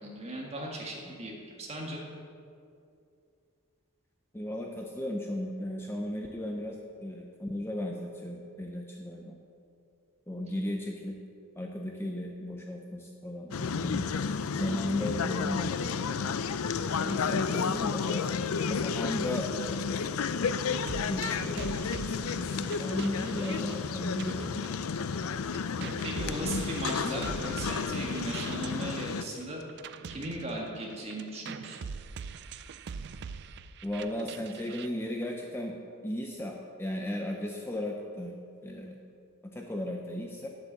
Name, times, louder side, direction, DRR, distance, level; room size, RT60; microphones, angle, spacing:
voice 1, 0.0-2.0 26.0-29.6 30.1-31.8, right 1 dB, 30° right, -2 dB, 1.9 m, -37 dB
voice 2, 4.3-9.4 10.3-11.2 11.6-14.1 14.5-16.0 17.0-18.2 18.6-19.5 19.9-20.1 20.7-24.6 25.8-26.0 27.0-27.2 33.8-35.8 36.0-38.3 38.6-39.0 39.4-40.5, left 1 dB, 10° left, 0 dB, 0.6 m, -35 dB
sound 1, 13.5-29.2, left 5 dB, 70° left, 0.4 m, -32 dB
sound 2, 20.9-25.3 25.5-34.9, right 6 dB, 50° right, 0.4 m, -43 dB
9.7 x 8.3 x 6.8 m, 2.4 s
head